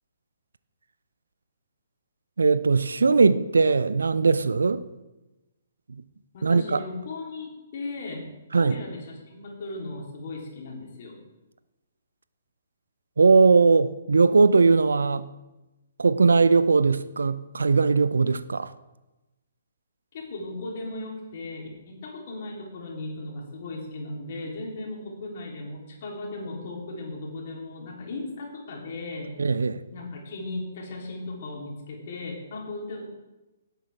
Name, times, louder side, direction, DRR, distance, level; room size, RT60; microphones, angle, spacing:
voice 1, 2.4-4.8 5.9-6.0 6.4-6.8 8.5-8.8 13.2-15.3 16.0-18.7 29.4-29.8, right 4 dB, 70° right, 0.6 m, -20 dB
voice 2, 6.3-8.3 8.5-11.2 20.1-29.3 29.9-33.1, left 2 dB, 45° left, 3.4 m, -37 dB
17.5 x 8.2 x 3.6 m
figure-of-eight pair, 130°, 0 cm